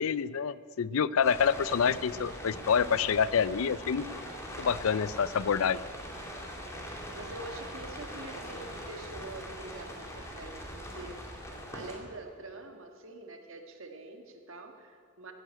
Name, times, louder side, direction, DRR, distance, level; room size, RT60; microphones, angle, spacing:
voice 1, 0.0-4.2 4.6-5.9, left 7 dB, 70° left, 18 dB, 0.4 m, -27 dB
sound 1, 1.2-12.0, equal, 15° left, 2.3 m, -42 dB
voice 2, 6.9-11.2 11.7-15.3, right 2 dB, 60° right, 4 dB, 1.6 m, -45 dB
15.5 x 9.8 x 8.8 m, 2.1 s
head